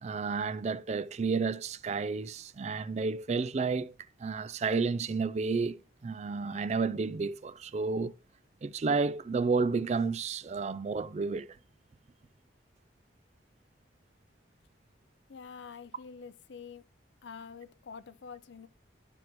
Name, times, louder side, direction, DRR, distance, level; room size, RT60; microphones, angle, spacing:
voice 1, 0.0-3.9 4.2-8.1 8.6-11.5, right 4 dB, 35° right, 0.3 m, -31 dB
voice 2, 15.3-16.8 17.2-18.7, left 6 dB, 75° left, 0.5 m, -47 dB
11.5 x 5.9 x 3.0 m
head